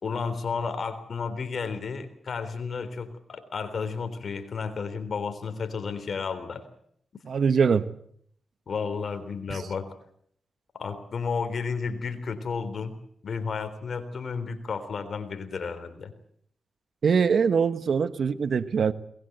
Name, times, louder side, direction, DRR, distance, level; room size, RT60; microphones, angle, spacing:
voice 1, 0.0-6.6 8.7-9.9 10.7-12.9 13.2-16.1, left 5 dB, 65° left, 10 dB, 3.6 m, -32 dB
voice 2, 7.3-7.9 9.5-9.7 17.0-18.9, right 6 dB, 70° right, 13 dB, 1.3 m, -23 dB
22.0 x 20.5 x 8.0 m, 0.67 s
cardioid pair, 50°, 0 cm